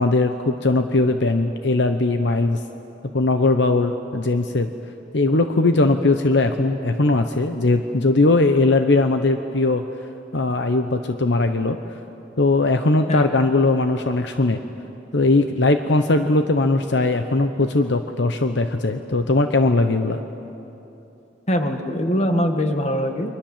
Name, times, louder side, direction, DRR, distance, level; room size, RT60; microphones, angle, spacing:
voice 1, 0.0-2.6 3.1-4.7 5.1-9.8 10.3-11.8 12.4-14.6 15.1-20.2, left 2 dB, 65° left, 7 dB, 0.9 m, -19 dB
voice 2, 21.5-23.3, equal, 35° left, 5 dB, 1.9 m, -22 dB
29.5 x 24.0 x 7.5 m, 3.0 s
head